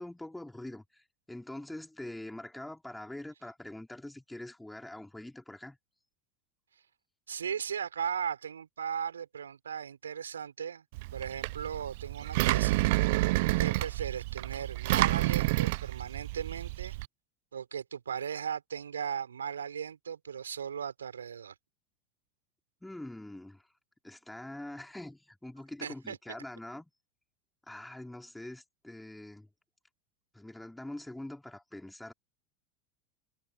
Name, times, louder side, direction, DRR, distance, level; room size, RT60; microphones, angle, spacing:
voice 1, 0.0-5.8 22.8-23.7 24.0-26.9 27.7-29.5 30.3-32.1, left 1 dB, 5° left, 3.6 m, -44 dB
voice 2, 7.3-10.8 11.1-12.8 13.6-17.0 17.5-21.5 25.8-26.2, right 7 dB, 80° right, 5.8 m, -37 dB
Engine, 10.9-17.1, right 22 dB, 60° right, 0.5 m, -29 dB
figure-of-eight pair, 80°, 0 cm